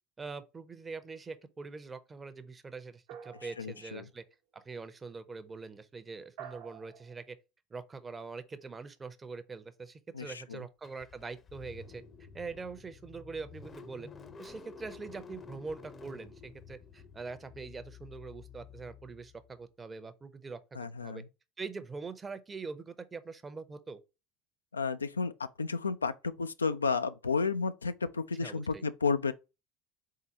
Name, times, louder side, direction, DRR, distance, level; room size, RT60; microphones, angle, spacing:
voice 1, 0.2-4.2 4.5-7.4 7.7-12.0 12.3-14.1 14.4-21.2 21.6-24.0 28.4-28.8, right 4 dB, 25° right, 0.7 m, -43 dB
sound 1, 3.1-4.1 6.4-7.2, right 8 dB, 70° right, 1.0 m, -48 dB
voice 2, 3.6-4.1 10.1-10.6 20.7-21.2 24.7-25.3 25.6-29.3, left 4 dB, 90° left, 0.3 m, -32 dB
Car / Engine starting, 10.8-19.6, left 6 dB, 30° left, 0.6 m, -51 dB
4.0 x 3.8 x 2.8 m
hypercardioid pair, 70°, 0 cm